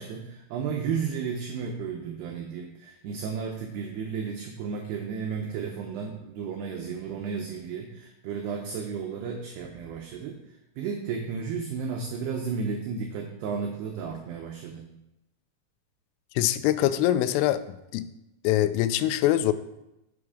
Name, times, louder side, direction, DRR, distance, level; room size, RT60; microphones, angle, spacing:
voice 1, 0.0-10.4 10.8-14.8, right 6 dB, 85° right, 2 dB, 2.3 m, -33 dB
voice 2, 16.4-17.6 17.9-18.1 18.4-19.5, left 13 dB, 90° left, 13 dB, 3.2 m, -23 dB
8.1 x 7.2 x 4.9 m, 0.90 s
omnidirectional pair, 5.7 m